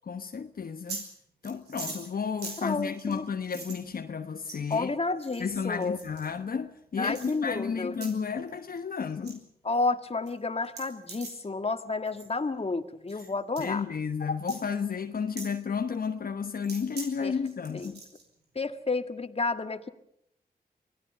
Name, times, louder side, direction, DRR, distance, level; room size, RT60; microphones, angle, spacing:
voice 1, 0.1-1.1 1.4-4.9 5.4-9.4 13.6-18.0, left 6 dB, 60° left, 1.2 m, -32 dB
sound 1, 0.6-1.1 1.4-3.8 4.4-4.8 5.2-6.3 7.1-7.3 7.9-8.1 8.5-8.8 9.0-9.3 9.7-9.8 10.3-10.4 10.6-11.4 12.0-12.3 13.1-13.3 13.6-13.7 14.5-14.6 15.4-15.5 16.6-17.1 17.4-18.2, right 4 dB, 85° right, 5.2 m, -42 dB
voice 2, 2.6-3.2 4.7-6.0 7.0-8.0 9.6-13.8 17.2-17.4 17.7-18.0 18.6-19.9, left 3 dB, 35° left, 1.9 m, -31 dB
24.5 x 17.0 x 6.8 m
cardioid pair, 50°, 17 cm